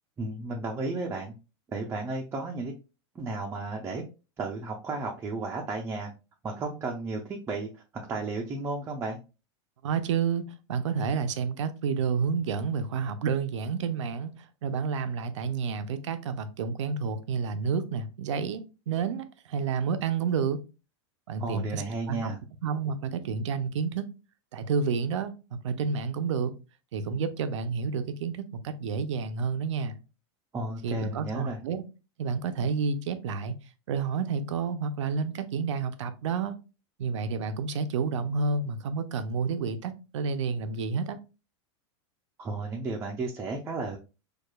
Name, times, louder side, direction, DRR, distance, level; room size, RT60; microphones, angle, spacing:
voice 1, 0.2-1.3 1.7-2.7 3.2-4.0 4.4-6.1 6.4-9.2 21.4-22.4 30.5-31.6 42.4-44.0, right 3 dB, 15° right, 0 dB, 0.5 m, -33 dB
voice 2, 9.8-10.4 10.7-20.6 21.3-21.8 22.1-22.3 22.6-24.1 24.5-26.5 26.9-29.9 30.8-31.8 32.2-33.5 33.9-36.6 37.0-41.2, right 5 dB, 90° right, 10 dB, 0.5 m, -30 dB
4.6 x 2.3 x 2.2 m, 0.31 s
supercardioid pair, 130°, 15 cm